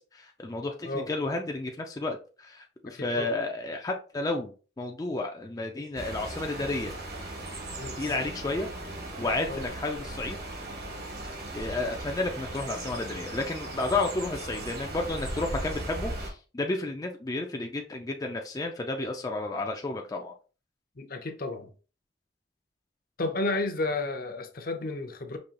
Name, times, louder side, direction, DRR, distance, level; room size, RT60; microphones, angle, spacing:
voice 1, 0.0-6.9 8.0-8.7 9.2-10.4 11.5-20.3, left 2 dB, 20° left, 0.4 m, -32 dB
voice 2, 2.9-3.4 7.8-8.0 9.5-9.7 21.0-21.7 23.2-25.4, left 2 dB, 55° left, 0.7 m, -32 dB
sound 1, 6.0-16.3, right 1 dB, 60° right, 1.4 m, -37 dB
5.3 x 2.9 x 2.8 m
head